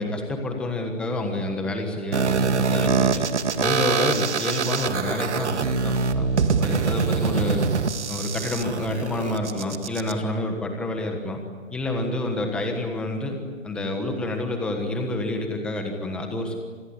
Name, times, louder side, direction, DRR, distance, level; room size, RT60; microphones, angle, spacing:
voice 1, 0.0-3.3 3.6-6.3 6.6-7.6 8.1-11.4 11.7-13.4 13.6-16.6, left 2 dB, 5° left, 4 dB, 1.4 m, -28 dB
sound 1, 2.1-10.1, right 5 dB, 65° right, 2.0 m, -24 dB
27.0 x 20.5 x 9.8 m, 1.5 s
hypercardioid pair, 170°, 38 cm